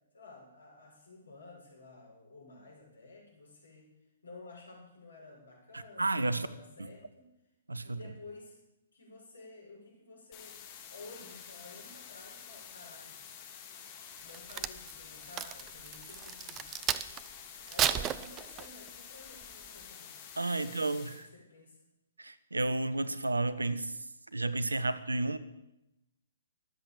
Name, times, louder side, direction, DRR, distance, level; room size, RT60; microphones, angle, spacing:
voice 1, 0.1-3.9 4.2-7.3 7.8-8.6 8.9-13.2 14.2-16.8 17.6-20.2 20.5-21.8, left 3 dB, 70° left, -1 dB, 6.8 m, -53 dB
voice 2, 5.7-6.5 7.7-8.0 20.4-21.3 22.2-24.0 24.3-25.4, right 2 dB, 75° right, 15 dB, 1.1 m, -32 dB
sound 1, 10.3-21.2, left 8 dB, 30° left, 4.4 m, -49 dB
Crack, 14.2-17.3 17.7-18.9 19.4-19.7, right 10 dB, 20° right, 0.7 m, -33 dB
23.5 x 8.2 x 7.3 m, 0.91 s
figure-of-eight pair, 120°, 0 cm